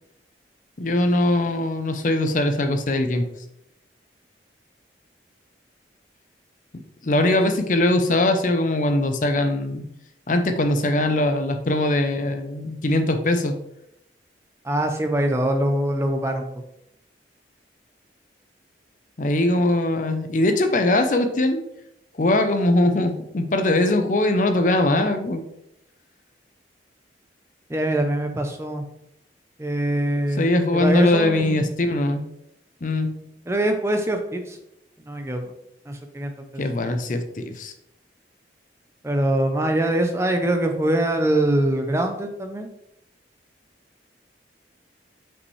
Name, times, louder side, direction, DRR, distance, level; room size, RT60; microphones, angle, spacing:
voice 1, 0.8-3.3 7.0-9.8 10.3-13.5 19.2-21.6 22.1-25.4 30.4-32.2 32.8-33.1 36.6-37.7, left 1 dB, 45° left, 7 dB, 0.6 m, -21 dB
voice 2, 14.6-16.4 27.7-28.8 29.6-31.7 33.5-34.6 35.1-35.5 35.9-36.6 39.0-42.7, right 1 dB, 15° right, 5 dB, 0.5 m, -23 dB
5.6 x 5.3 x 3.2 m, 0.80 s
head